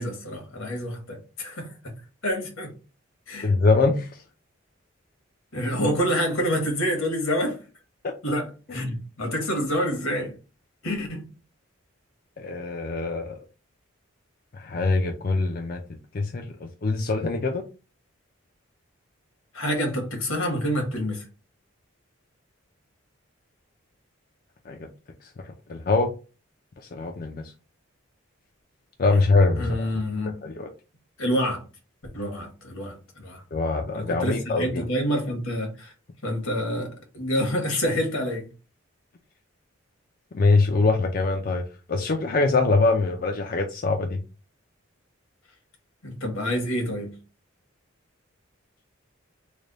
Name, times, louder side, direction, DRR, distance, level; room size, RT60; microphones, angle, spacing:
voice 1, 0.0-1.9 2.2-2.7 3.3-3.5 5.5-7.6 8.2-10.3 10.8-11.2 19.5-21.3 29.6-30.3 31.2-31.6 32.1-33.4 33.9-35.9 36.2-38.4 46.0-47.1, equal, 80° left, 1.4 m, -27 dB
voice 2, 3.4-4.2 8.0-8.1 8.7-8.8 12.4-13.4 14.5-15.8 16.1-17.6 24.7-24.9 25.2-25.3 25.7-26.1 26.9-27.5 29.0-29.9 30.4-30.7 33.5-34.8 40.3-44.2, left 3 dB, 45° left, 0.4 m, -23 dB
3.3 x 2.2 x 3.9 m
head